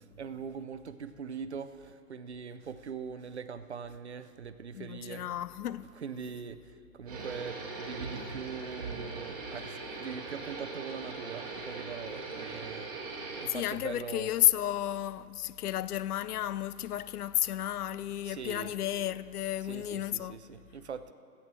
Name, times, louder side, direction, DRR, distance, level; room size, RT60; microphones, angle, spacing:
voice 1, 0.0-5.3 6.0-12.9 13.3-14.3 18.2-18.7 19.6-21.1, right 6 dB, 50° right, 0.5 m, -42 dB
voice 2, 4.7-5.9 13.5-20.4, left 12 dB, 75° left, 0.5 m, -32 dB
sound 1, 7.1-13.5, right 3 dB, 25° right, 1.6 m, -40 dB
14.0 x 8.5 x 6.0 m
hypercardioid pair, 180°, 46 cm